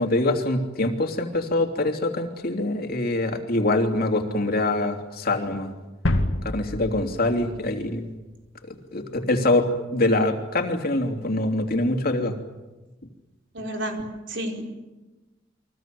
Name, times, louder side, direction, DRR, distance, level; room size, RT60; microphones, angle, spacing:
voice 1, 0.0-5.7 6.4-8.1 8.7-12.3, left 2 dB, 50° left, 4 dB, 3.2 m, -24 dB
sound 1, 6.0-8.5, left 1 dB, 75° left, 2.1 m, -28 dB
voice 2, 13.5-14.6, right 1 dB, 65° right, 3 dB, 4.7 m, -31 dB
30.0 x 23.5 x 7.8 m, 1.1 s
head